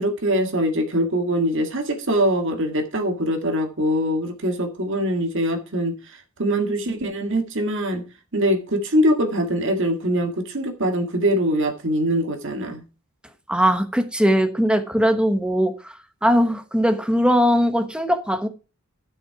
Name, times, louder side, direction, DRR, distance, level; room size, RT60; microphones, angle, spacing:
voice 1, 0.0-5.9 6.4-8.0 8.3-12.8, equal, 60° right, 1.9 m, -23 dB
voice 2, 13.5-15.9 16.2-18.5, equal, 5° right, 1.0 m, -20 dB
12.0 x 6.8 x 4.7 m
head